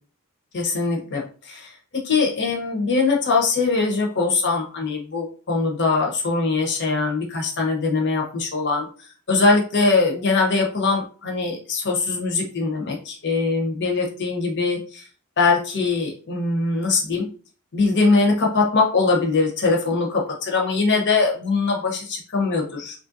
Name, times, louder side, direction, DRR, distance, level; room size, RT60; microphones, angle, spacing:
voice 1, 0.5-1.8 2.0-8.9 9.3-15.0 15.4-17.2 17.7-20.1 20.5-23.0, left 3 dB, 55° left, 0 dB, 0.9 m, -22 dB
3.3 x 2.5 x 2.5 m, 0.39 s
head